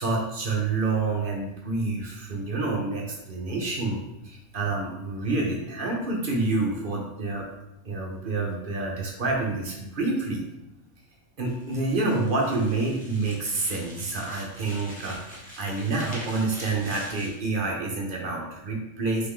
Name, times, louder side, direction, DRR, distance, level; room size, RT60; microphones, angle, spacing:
voice 1, 0.0-7.5 7.8-10.4 11.4-19.3, right 3 dB, 50° right, 0 dB, 0.7 m, -28 dB
sound 1, 11.5-17.4, equal, 5° left, 1.0 m, -44 dB
3.9 x 3.4 x 3.6 m, 0.90 s
omnidirectional pair, 1.5 m